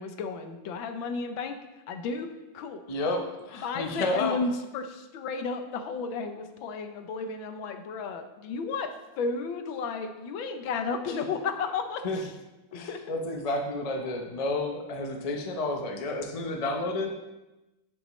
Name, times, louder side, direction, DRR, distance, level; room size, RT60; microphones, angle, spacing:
voice 1, 0.0-1.5 1.9-2.3 2.5-2.8 3.6-12.3 12.7-13.0, left 4 dB, 85° left, 7 dB, 1.6 m, -33 dB
voice 2, 2.9-4.4 12.0-12.2 12.7-17.1, left 2 dB, 40° left, 3 dB, 0.5 m, -31 dB
9.7 x 7.1 x 3.1 m, 1.0 s
omnidirectional pair, 2.1 m